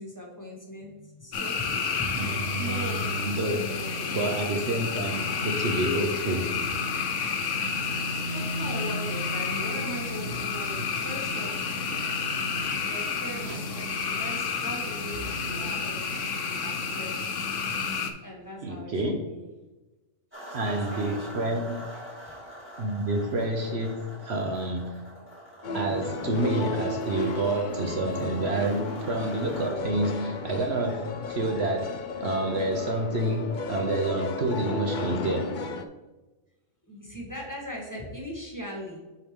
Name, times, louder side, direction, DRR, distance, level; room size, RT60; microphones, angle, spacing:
voice 1, 0.0-1.7 2.0-2.3 2.5-3.1 3.6-4.5 8.0-12.0 12.2-12.4 12.8-17.6 18.2-19.5 20.5-22.2 36.8-39.0, equal, 15° left, -2 dB, 1.4 m, -40 dB
sound 1, 1.3-18.1, left 5 dB, 70° left, 1.1 m, -30 dB
voice 2, 2.1-3.6 4.1-6.5 13.4-13.6 18.6-19.2 20.5-21.8 22.8-25.1 25.7-35.5, right 1 dB, 60° right, 3 dB, 1.0 m, -28 dB
sound 2, 20.3-29.7, equal, 10° right, 2.3 m, -45 dB
sound 3, 25.6-35.8, left 3 dB, 50° left, 0.6 m, -34 dB
8.2 x 4.7 x 3.7 m, 1.1 s
omnidirectional pair, 1.3 m